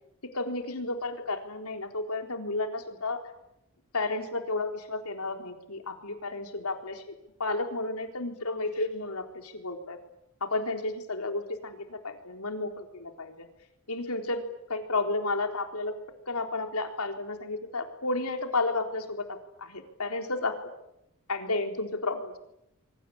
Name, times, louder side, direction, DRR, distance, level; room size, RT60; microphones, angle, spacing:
voice 1, 0.3-3.2 3.9-7.1 7.4-10.0 10.4-13.5 13.9-14.4 14.7-15.9 16.3-20.6 21.3-22.4, left 2 dB, 85° left, 5 dB, 4.0 m, -32 dB
25.5 x 24.0 x 8.8 m, 0.84 s
head